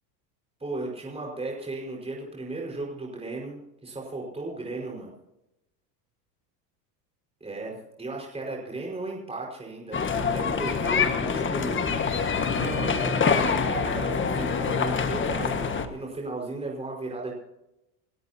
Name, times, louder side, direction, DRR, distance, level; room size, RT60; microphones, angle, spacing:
voice 1, 0.6-5.1 7.4-11.8 12.6-17.3, right 2 dB, 10° right, -2 dB, 5.1 m, -35 dB
sound 1, 9.9-15.9, left 5 dB, 25° left, 1.6 m, -25 dB
29.5 x 13.0 x 2.9 m, 0.90 s
supercardioid pair, 105°, 48 cm